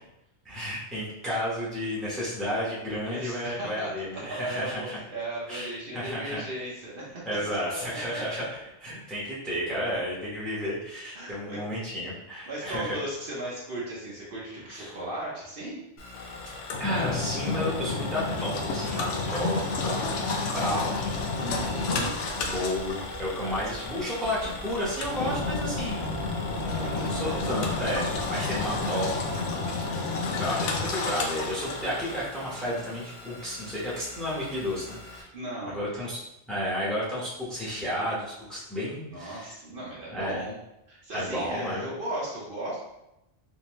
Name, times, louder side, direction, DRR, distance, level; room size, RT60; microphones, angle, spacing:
voice 1, 0.4-5.0 5.5-6.4 7.2-13.0 14.7-15.0 16.8-21.2 22.3-26.1 26.5-29.6 30.3-35.3 35.7-36.2 36.5-39.5 40.1-40.4 41.1-41.9, equal, ahead, -7 dB, 0.8 m, -32 dB
voice 2, 3.0-7.6 8.1-8.2 11.1-11.6 12.5-15.8 21.4-22.2 23.4-23.5 26.7-27.4 30.0-30.6 35.3-35.8 39.1-40.6 40.9-42.8, right 1 dB, 55° right, -5 dB, 1.0 m, -36 dB
sound 1, 16.0-35.2, left 2 dB, 50° left, 0.8 m, -46 dB
Engine, 16.1-32.2, left 3 dB, 85° left, 0.9 m, -31 dB
sound 2, 20.9-28.9, equal, 35° right, 0.4 m, -44 dB
3.6 x 2.7 x 3.0 m, 0.88 s
omnidirectional pair, 1.2 m